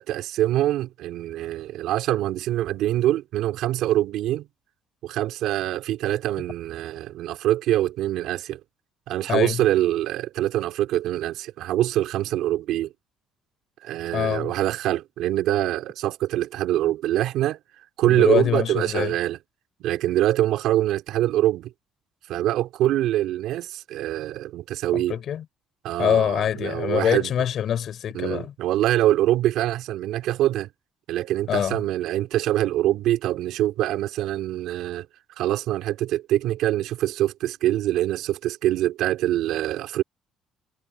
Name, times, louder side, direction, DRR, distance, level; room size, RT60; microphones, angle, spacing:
voice 1, 0.0-4.5 5.0-8.6 9.1-12.9 13.8-17.6 18.0-19.4 19.8-21.7 22.3-25.2 25.8-27.3 28.1-30.7 31.1-35.1 35.4-40.0, right 13 dB, 75° right, 2.5 m, -24 dB
voice 2, 9.3-9.6 14.1-14.5 18.0-19.2 24.9-25.4 26.0-28.5 31.5-31.8, left 9 dB, 60° left, 4.2 m, -24 dB
cardioid pair, 90°, 0 cm